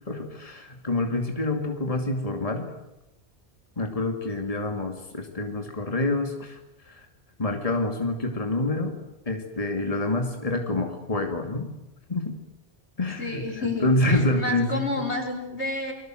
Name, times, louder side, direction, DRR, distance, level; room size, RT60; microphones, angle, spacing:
voice 1, 0.1-2.7 3.8-6.6 6.9-7.1 7.4-9.0 9.3-11.7 12.1-12.3 13.0-15.1, left 2 dB, 30° left, 3 dB, 2.6 m, -27 dB
voice 2, 13.2-15.9, left 2 dB, 80° left, 2 dB, 5.0 m, -30 dB
29.5 x 22.5 x 7.8 m, 0.95 s
omnidirectional pair, 1.1 m